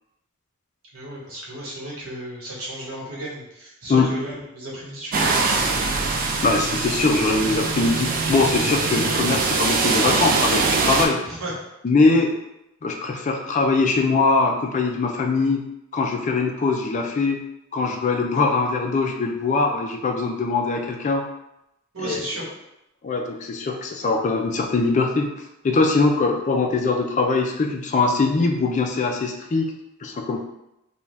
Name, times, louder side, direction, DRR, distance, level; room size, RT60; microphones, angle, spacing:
voice 1, 0.9-6.0 11.2-11.6 12.1-12.2 21.9-22.5, right 1 dB, 80° right, -5 dB, 1.0 m, -34 dB
sound 1, 5.1-11.1, right 4 dB, 40° right, 0.3 m, -22 dB
voice 2, 6.4-11.2 11.8-12.3 12.8-15.6 15.9-17.4 17.7-21.2 22.0-22.2 23.0-25.3 25.6-29.7 30.0-30.4, left 3 dB, 35° left, 2 dB, 0.4 m, -22 dB
2.6 x 2.2 x 3.2 m, 0.86 s
head